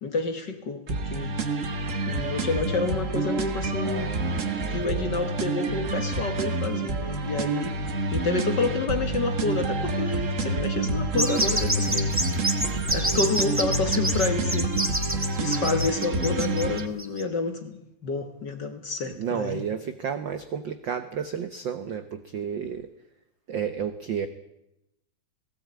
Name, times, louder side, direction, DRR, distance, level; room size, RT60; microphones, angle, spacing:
voice 1, 0.0-1.4 2.1-4.1 4.7-7.8 8.1-12.4 12.8-14.9 15.4-19.7, left 3 dB, 45° left, 8 dB, 1.7 m, -29 dB
sound 1, 0.9-16.9, right 2 dB, 45° right, 1.0 m, -28 dB
voice 2, 3.8-5.1 19.0-22.9 23.5-24.3, right 7 dB, 75° right, 10 dB, 1.0 m, -32 dB
sound 2, 11.2-17.2, right 1 dB, 20° right, 0.4 m, -28 dB
18.5 x 17.0 x 8.8 m, 0.86 s
omnidirectional pair, 3.4 m